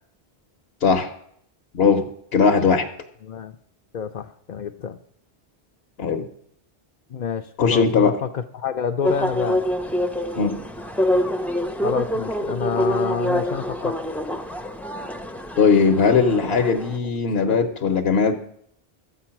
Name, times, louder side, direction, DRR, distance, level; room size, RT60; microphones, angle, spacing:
voice 1, 0.8-1.1 1.7-2.9 6.0-6.3 7.6-8.2 10.3-10.7 15.6-18.4, left 5 dB, 80° left, 5 dB, 1.1 m, -19 dB
voice 2, 3.2-3.6 3.9-5.0 7.1-9.6 11.8-14.0 17.5-17.7, left 7 dB, 55° left, 4 dB, 0.6 m, -28 dB
sound 1, 9.0-17.0, equal, ahead, 0.5 m, -26 dB
12.5 x 8.3 x 5.8 m, 0.70 s
omnidirectional pair, 1.0 m